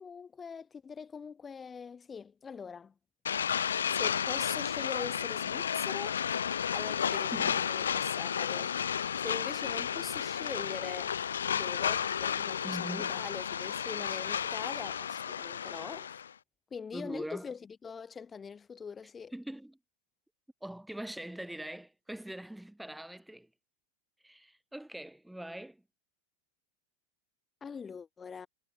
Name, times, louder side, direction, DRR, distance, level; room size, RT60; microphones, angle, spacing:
voice 1, 0.0-2.9 3.9-6.2 6.7-8.8 9.2-11.2 11.5-16.2 16.7-19.3 27.6-28.5, left 6 dB, 20° left, 7.1 m, -43 dB
sound 1, 3.3-16.3, left 8 dB, 65° left, 0.3 m, -32 dB
voice 2, 7.1-7.6 12.6-13.3 16.9-17.5 19.3-19.8 20.6-23.5 24.2-25.8, right 1 dB, 5° right, 6.0 m, -42 dB
figure-of-eight pair, 90°, 0 cm